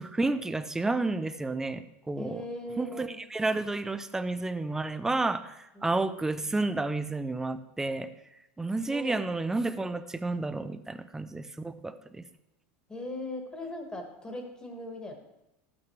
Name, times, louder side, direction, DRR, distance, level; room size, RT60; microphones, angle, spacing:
voice 1, 0.0-2.4 2.8-8.1 8.6-12.2, right 2 dB, 5° right, 11 dB, 0.4 m, -31 dB
voice 2, 2.2-3.2 5.8-5.9 8.9-9.1 12.9-15.1, left 1 dB, 10° left, 3 dB, 1.5 m, -39 dB
12.0 x 8.7 x 3.1 m, 0.90 s
supercardioid pair, 145°, 7 cm